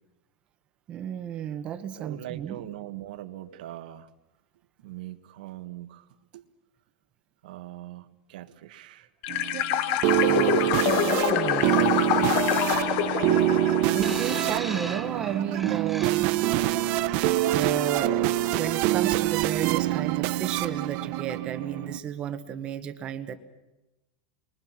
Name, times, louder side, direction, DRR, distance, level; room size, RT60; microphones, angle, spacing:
voice 1, 0.9-2.6 10.3-12.1 13.9-16.7 17.0-17.1 17.5-23.4, right 9 dB, 25° right, 9 dB, 1.2 m, -33 dB
voice 2, 2.0-4.1 4.8-6.1 6.3-6.4 7.4-9.1, right 14 dB, 65° right, 9 dB, 1.7 m, -41 dB
sound 1, 9.2-15.0, left 12 dB, 40° left, 0.9 m, -27 dB
sound 2, 9.3-22.0, right 14 dB, 40° right, 0.9 m, -25 dB
sound 3, 14.0-16.6 17.5-17.7, right 2 dB, ahead, 1.0 m, -39 dB
29.5 x 23.5 x 6.0 m, 1.0 s
supercardioid pair, 175°, 5 cm